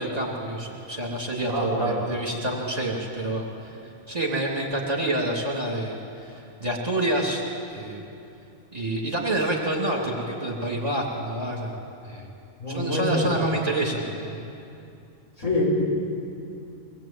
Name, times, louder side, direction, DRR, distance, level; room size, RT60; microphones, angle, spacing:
voice 1, 0.0-3.8 4.1-7.4 7.7-8.0 8.7-11.7 12.0-12.3 12.7-14.4, right 1 dB, 25° right, -2 dB, 3.1 m, -28 dB
voice 2, 1.5-2.0 12.6-13.4 15.4-15.7, left 1 dB, 70° left, -5 dB, 6.9 m, -25 dB
24.0 x 20.0 x 9.1 m, 2.7 s
omnidirectional pair, 1.4 m